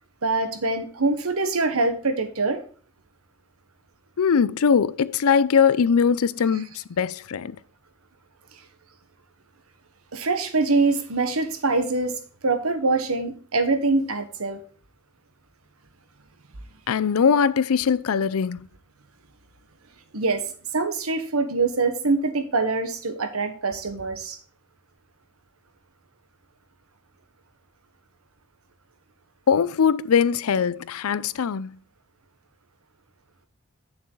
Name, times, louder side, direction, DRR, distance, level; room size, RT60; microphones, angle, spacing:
voice 1, 0.2-2.6 10.1-12.1 12.4-14.6 20.1-24.4, right 3 dB, 85° right, 1.3 m, -24 dB
voice 2, 4.2-7.6 16.9-18.7 29.5-31.8, left 6 dB, 85° left, 0.5 m, -21 dB
8.7 x 6.9 x 3.9 m
head